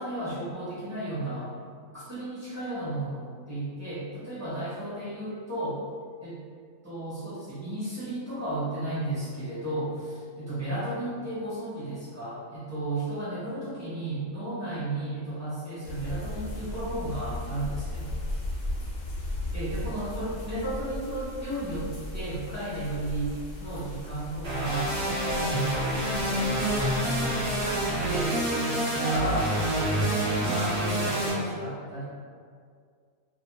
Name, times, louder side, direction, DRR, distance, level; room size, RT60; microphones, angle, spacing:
voice 1, 0.0-1.5 1.9-5.8 6.2-6.4 6.8-18.1 19.5-23.3 23.6-27.4 27.9-28.4 28.9-32.0, right 1 dB, 15° right, -12 dB, 0.7 m, -33 dB
sound 1, 15.8-28.3, left 1 dB, 65° left, 0.9 m, -37 dB
sound 2, 24.4-31.3, right 1 dB, 55° right, 0.4 m, -27 dB
2.5 x 2.1 x 3.0 m, 2.1 s
omnidirectional pair, 1.6 m